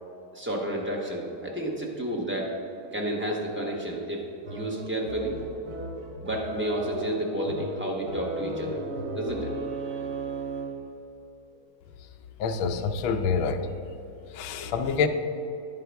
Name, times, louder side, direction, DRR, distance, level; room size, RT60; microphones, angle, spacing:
voice 1, 0.3-2.5 2.9-4.2 4.5-5.4 6.2-8.8 9.1-9.5, right 1 dB, 20° right, -2 dB, 0.3 m, -31 dB
sound 1, 4.4-10.9, right 2 dB, 50° right, 1.4 m, -35 dB
voice 2, 12.4-13.6 14.3-15.1, left 5 dB, 75° left, 7 dB, 1.4 m, -26 dB
10.5 x 9.3 x 3.4 m, 2.7 s
omnidirectional pair, 2.3 m